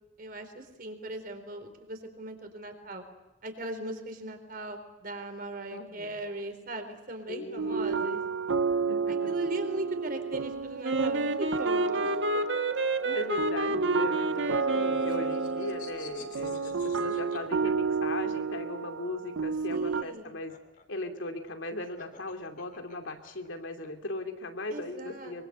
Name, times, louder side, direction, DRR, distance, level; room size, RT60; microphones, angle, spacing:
voice 1, 0.2-3.0 3.4-8.2 9.1-12.4 19.7-20.3 24.7-25.4, right 1 dB, 45° right, 6 dB, 4.0 m, -39 dB
voice 2, 5.7-6.2 7.3-8.2 8.9-9.2 13.0-20.5 20.9-25.4, left 2 dB, 80° left, 5 dB, 2.7 m, -38 dB
sound 1, 7.6-20.0, right 5 dB, 90° right, 0.8 m, -31 dB
Wind instrument woodwind instrument, 10.8-15.9, right 2 dB, 70° right, 1.6 m, -30 dB
sound 2, 14.4-18.4 19.6-23.9, left 5 dB, 45° left, 3.1 m, -52 dB
24.0 x 24.0 x 8.1 m, 1.1 s
head